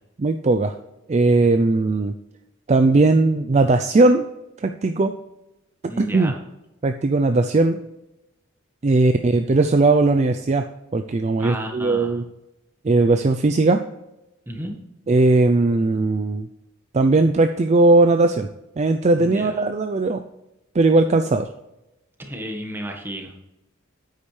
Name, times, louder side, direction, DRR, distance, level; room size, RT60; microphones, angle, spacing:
voice 1, 0.2-0.7 1.1-2.1 2.7-4.3 4.6-5.1 6.0-6.3 6.8-7.8 8.8-10.6 10.9-12.2 12.8-13.8 15.1-16.5 16.9-18.5 18.8-20.2 20.7-21.5, right 2 dB, 35° right, 7 dB, 0.4 m, -18 dB
voice 2, 5.9-6.4 11.4-12.2 14.5-14.7 19.2-19.6 22.2-23.3, equal, 10° right, 2 dB, 1.5 m, -32 dB
9.7 x 8.6 x 3.3 m, 0.95 s
head